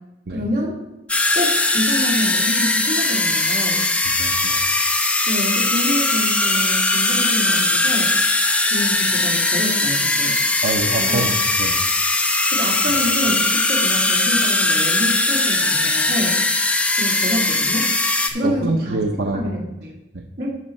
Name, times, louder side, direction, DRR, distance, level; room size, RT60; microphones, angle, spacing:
voice 1, 0.3-0.8 1.3-3.8 5.2-8.1 8.7-10.4 10.9-11.2 12.5-16.4 16.9-17.9 18.3-19.0 19.3-20.0 20.4-20.5, equal, 60° right, -3 dB, 2.7 m, -27 dB
sound 1, 1.1-18.3, left 2 dB, 5° left, 0.8 m, -19 dB
voice 2, 4.2-4.7 10.6-11.3 11.6-11.8 12.9-13.0 18.4-19.6 20.1-20.2, right 2 dB, 75° right, 3 dB, 0.8 m, -25 dB
11.0 x 5.6 x 4.3 m, 0.99 s
head